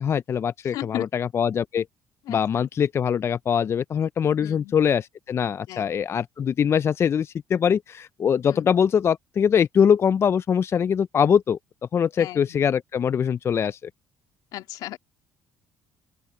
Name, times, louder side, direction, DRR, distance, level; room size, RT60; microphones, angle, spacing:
voice 1, 0.0-1.9 2.3-11.6 11.9-13.8, left 7 dB, 40° left, 0.4 m, -22 dB
voice 2, 0.7-1.1 2.3-2.7 4.4-4.7 5.7-6.0 8.5-8.7 12.2-12.7 14.5-15.0, left 15 dB, 75° left, 2.6 m, -36 dB
open air
supercardioid pair, 75°, 7 cm